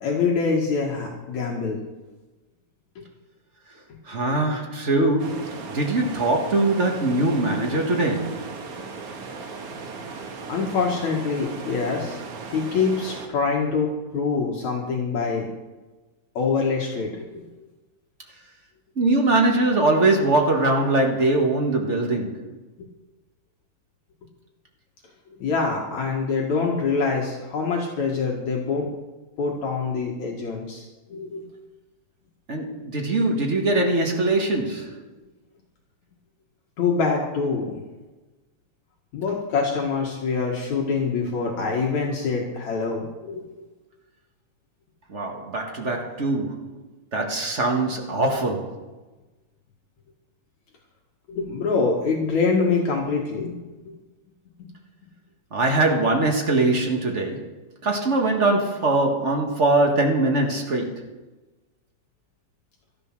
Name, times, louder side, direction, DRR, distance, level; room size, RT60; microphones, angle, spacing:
voice 1, 0.0-1.8 10.5-12.2 12.5-15.5 16.3-17.5 22.8-22.9 25.4-28.9 29.4-31.5 36.8-37.8 39.1-43.7 51.3-54.0, left 4 dB, 60° left, 3.0 m, -25 dB
voice 2, 4.1-8.4 18.9-22.4 32.5-35.0 45.1-46.8 47.1-48.8 55.5-57.5 57.8-61.1, right 2 dB, 40° right, 1.0 m, -22 dB
sound 1, 5.2-13.3, right 4 dB, 65° right, 2.8 m, -37 dB
13.5 x 12.0 x 6.1 m
omnidirectional pair, 3.8 m